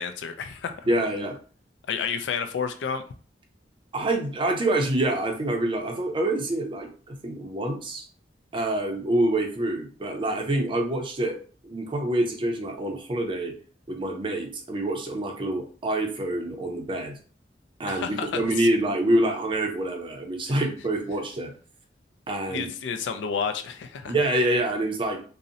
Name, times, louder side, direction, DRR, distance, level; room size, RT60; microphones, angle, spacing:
voice 1, 0.0-0.8 1.9-3.0 17.9-18.7 20.5-20.6 22.5-24.1, left 6 dB, 70° left, 8 dB, 0.3 m, -30 dB
voice 2, 0.9-1.4 3.9-8.0 8.5-11.4 11.6-13.5 13.9-17.2 17.8-21.5 22.3-22.7 24.1-25.2, right 1 dB, 30° right, 3 dB, 0.5 m, -26 dB
2.7 x 2.0 x 2.5 m, 0.41 s
head